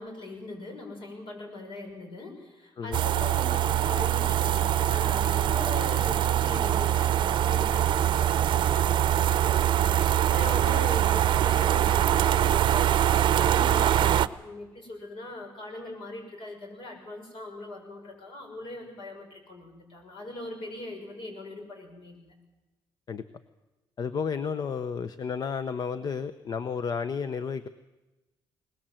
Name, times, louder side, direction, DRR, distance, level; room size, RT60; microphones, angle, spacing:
voice 1, 0.0-13.0 13.3-22.3, left 2 dB, 65° left, 3 dB, 6.5 m, -41 dB
sound 1, 2.9-14.3, right 11 dB, 60° right, 0.7 m, -23 dB
voice 2, 24.0-27.7, left 6 dB, 45° left, 12 dB, 0.8 m, -32 dB
21.5 x 20.0 x 7.8 m, 1.1 s
cardioid pair, 110°, 9 cm